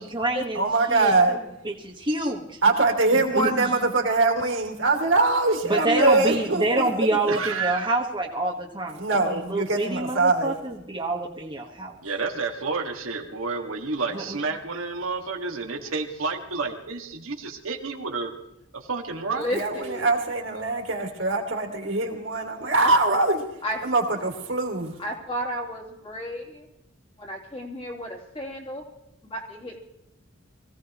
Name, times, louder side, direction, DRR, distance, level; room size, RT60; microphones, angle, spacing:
voice 1, 0.0-1.1 1.6-2.6 3.3-3.7 5.7-11.9 14.1-14.4, right 2 dB, 25° right, -3 dB, 1.4 m, -27 dB
voice 2, 0.5-1.4 2.6-6.9 9.0-10.6 19.5-23.4 23.8-25.0, right 3 dB, 65° right, 2 dB, 2.7 m, -23 dB
voice 3, 6.0-6.5 19.3-20.1 22.7-22.9 23.6-23.8 25.0-26.7 27.2-28.8 29.2-29.8, equal, 25° left, -1 dB, 3.0 m, -32 dB
voice 4, 7.3-7.9 12.0-18.3 18.7-19.5, right 4 dB, 90° right, 2 dB, 1.8 m, -30 dB
24.5 x 16.5 x 3.0 m, 0.86 s
head